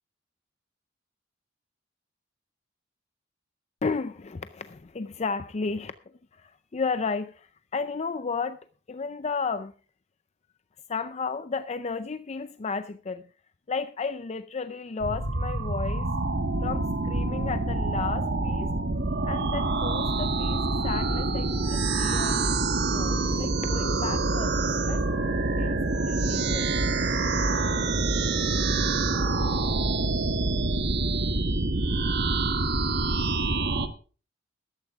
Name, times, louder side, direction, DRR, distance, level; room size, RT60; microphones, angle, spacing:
voice 1, 3.8-5.9 6.3-8.6 8.9-9.7 10.9-13.3 13.7-16.1 16.6-18.7 19.2-22.5 22.8-24.5 24.8-25.1 25.6-25.8 26.1-26.8, left 4 dB, 35° left, 11 dB, 0.5 m, -33 dB
sound 1, 15.0-33.9, right 3 dB, 60° right, 1.3 m, -26 dB
14.0 x 12.5 x 3.5 m, 0.37 s
head